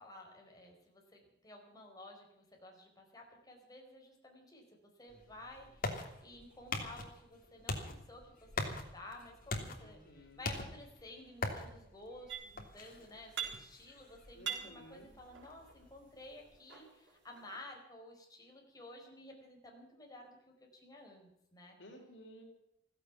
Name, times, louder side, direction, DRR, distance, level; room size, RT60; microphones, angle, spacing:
voice 1, 0.0-21.8, left 1 dB, 20° left, 0 dB, 4.7 m, -53 dB
sound 1, 5.1-16.6, left 2 dB, 50° left, 3.0 m, -44 dB
voice 2, 9.8-10.4 14.3-15.1 21.8-22.4, equal, 75° left, 3 dB, 4.1 m, -55 dB
sound 2, 12.3-12.8 13.1-14.0 14.3-15.8 16.4-17.6, right 8 dB, 90° right, 4.8 m, -44 dB
16.0 x 15.0 x 5.9 m, 0.80 s
head